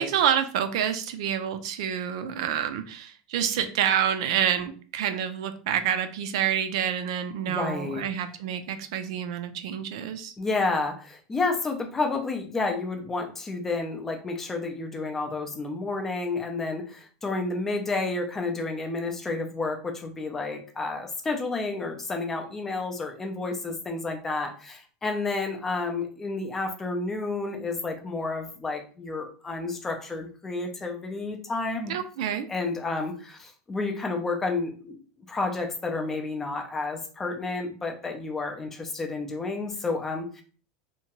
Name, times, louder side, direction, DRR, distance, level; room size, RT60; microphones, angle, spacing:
voice 1, 0.0-10.3 31.9-32.5, right 9 dB, 70° right, 9 dB, 0.4 m, -28 dB
voice 2, 7.4-8.1 10.4-32.0 32.5-35.0 35.3-40.4, left 3 dB, 10° left, 3 dB, 0.4 m, -30 dB
2.8 x 2.2 x 2.8 m, 0.39 s
supercardioid pair, 170°, 3 cm